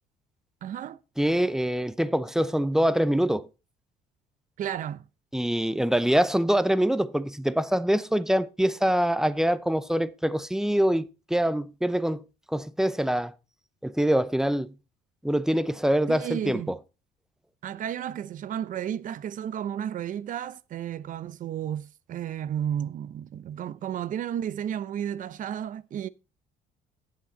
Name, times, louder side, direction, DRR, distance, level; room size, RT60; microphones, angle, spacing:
voice 1, 0.6-1.0 4.6-5.0 16.1-16.8 17.6-26.1, right 9 dB, 50° right, 0.6 m, -33 dB
voice 2, 1.2-3.5 5.3-12.2 12.5-13.3 13.8-14.7 15.2-16.8, equal, 5° right, 0.6 m, -24 dB
8.6 x 8.2 x 4.2 m
cardioid pair, 110°, 17 cm